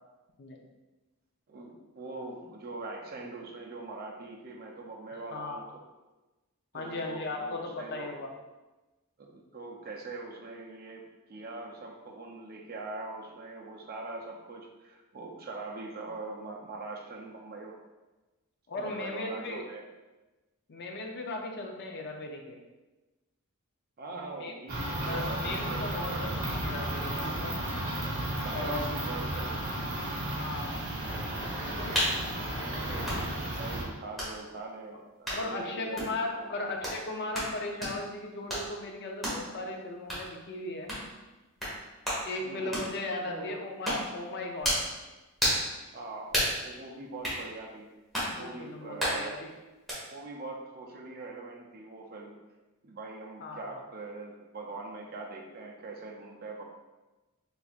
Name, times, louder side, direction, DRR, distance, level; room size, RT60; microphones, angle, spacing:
voice 1, 1.5-5.8 6.7-8.1 9.2-17.8 18.8-19.8 24.0-26.5 27.1-27.3 28.1-29.8 32.1-36.8 42.4-42.9 43.3-43.6 45.9-47.9 48.3-49.4 50.1-52.3 52.8-56.6, right 3 dB, 45° right, 0 dB, 0.5 m, -42 dB
voice 2, 5.1-5.6 6.7-8.3 18.7-19.7 20.7-22.6 24.4-24.5 25.1-27.5 28.5-28.9 30.3-30.8 32.3-32.4 35.3-40.9 42.3-44.8 48.3-49.5 53.4-53.8, left 2 dB, 50° left, 2 dB, 0.5 m, -37 dB
sound 1, 24.7-33.8, right 1 dB, 65° right, 1.3 m, -33 dB
sound 2, 31.9-32.2 33.0-33.2 34.2-34.3 35.2-35.4 36.0-36.1 36.8-37.0 37.3-37.5 37.8-38.0 38.5-38.7 39.2-39.4 40.1-40.2 40.9-41.1 41.6-41.7 42.0-42.2 42.7-42.9 43.8-44.1 44.6-44.9 45.4-45.7 46.3-46.6 47.2-47.4 48.1-48.3 49.0-49.2 49.9-50.0, equal, ahead, 1.3 m, -30 dB
4.2 x 3.4 x 2.4 m, 1.1 s
head